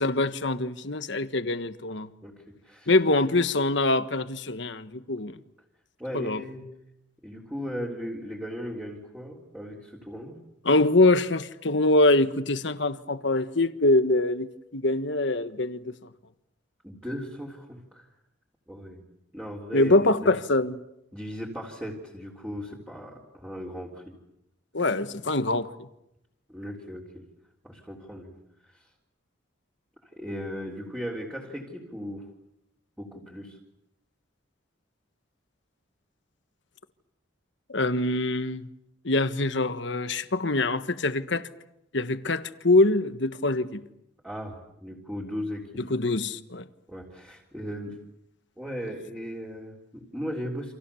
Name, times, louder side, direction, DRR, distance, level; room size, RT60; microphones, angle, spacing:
voice 1, 0.0-2.1 2.9-5.4 6.1-6.4 10.6-15.9 19.7-20.8 24.7-25.7 37.7-38.7 39.0-41.5 41.9-43.8 45.9-46.6, left 2 dB, 65° left, 1.4 m, -24 dB
voice 2, 2.2-2.9 6.0-6.6 7.2-10.4 16.8-18.1 18.7-19.0 19.3-19.9 20.3-20.4 21.1-24.2 26.5-27.2 27.6-28.4 28.6-28.9 30.1-32.3 33.0-33.6 44.2-45.8 46.9-48.0 48.6-50.7, equal, 10° right, 3.7 m, -37 dB
29.5 x 27.0 x 7.1 m
head